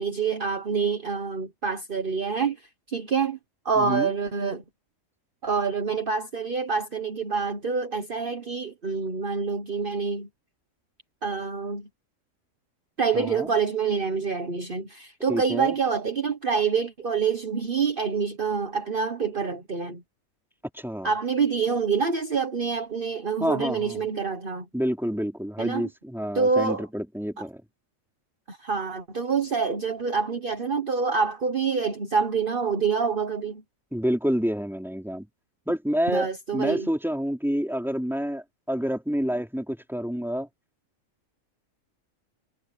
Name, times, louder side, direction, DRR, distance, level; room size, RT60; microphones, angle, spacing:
voice 1, 0.0-3.4 3.6-4.6 5.4-10.3 11.2-11.9 13.0-20.0 21.0-24.7 25.6-25.9 26.3-26.9 27.4-27.5 28.5-33.6 36.1-36.9, right 5 dB, 45° right, 1.5 m, -26 dB
voice 2, 3.8-4.1 13.1-13.5 15.3-15.8 20.7-21.1 23.4-24.1 24.7-27.6 33.9-35.3 35.7-36.3 36.5-40.5, equal, ahead, 4.2 m, -28 dB
omnidirectional pair, 1.4 m